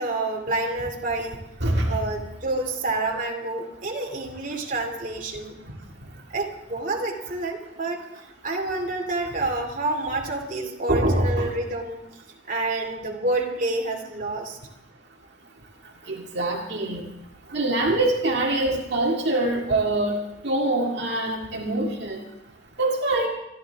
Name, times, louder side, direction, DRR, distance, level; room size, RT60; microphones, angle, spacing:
voice 1, 0.0-1.4 1.8-5.6 6.3-8.0 8.4-12.0 12.5-14.6, right 2 dB, 45° right, 1 dB, 2.5 m, -28 dB
voice 2, 1.6-2.0 10.9-11.5 16.1-17.0 17.5-22.2 22.8-23.3, right 2 dB, 60° right, -1 dB, 2.1 m, -24 dB
27.0 x 12.0 x 3.5 m, 0.87 s
head